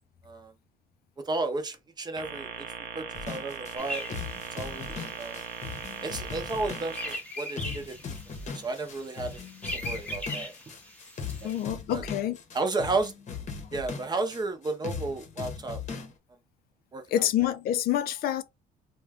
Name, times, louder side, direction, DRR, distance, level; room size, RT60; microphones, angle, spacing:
voice 1, 1.3-2.7 2.9-4.0 4.5-5.4 6.0-8.1 8.5-9.4 9.7-10.5 11.4-12.0 12.5-13.1 13.7-15.8 16.9-17.3, right 3 dB, 25° right, 0.6 m, -33 dB
sound 1, 2.2-7.2, right 7 dB, 65° right, 0.6 m, -39 dB
sound 2, 3.1-16.1, left 5 dB, 45° left, 0.8 m, -39 dB
sound 3, 3.8-11.7, equal, 10° left, 0.8 m, -41 dB
voice 2, 11.4-12.4 17.1-18.4, left 11 dB, 65° left, 0.4 m, -27 dB
2.5 x 2.2 x 3.4 m
cardioid pair, 110°, 17 cm